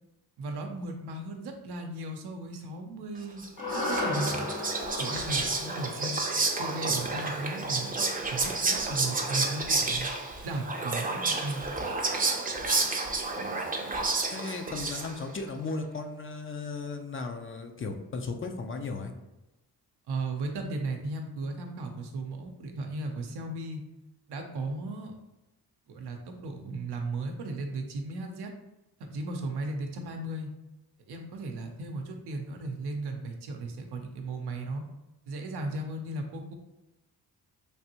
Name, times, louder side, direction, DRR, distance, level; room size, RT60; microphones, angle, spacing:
voice 1, 0.4-3.4 3.7-4.4 5.0-6.2 6.6-7.9 8.3-10.1 10.4-11.6 20.1-23.8 24.3-25.2 25.9-28.5 29.0-30.5 31.1-34.8 35.3-36.5, right 2 dB, 85° right, 3 dB, 0.6 m, -36 dB
Whispering, 3.4-15.4, right 3 dB, 20° right, 0.5 m, -30 dB
sound 1, 3.6-8.0, left 2 dB, 55° left, 1.2 m, -36 dB
voice 2, 13.3-13.7 14.3-19.1, left 3 dB, 35° left, 5 dB, 0.4 m, -36 dB
3.3 x 2.6 x 2.8 m, 0.96 s
cardioid pair, 65°, 39 cm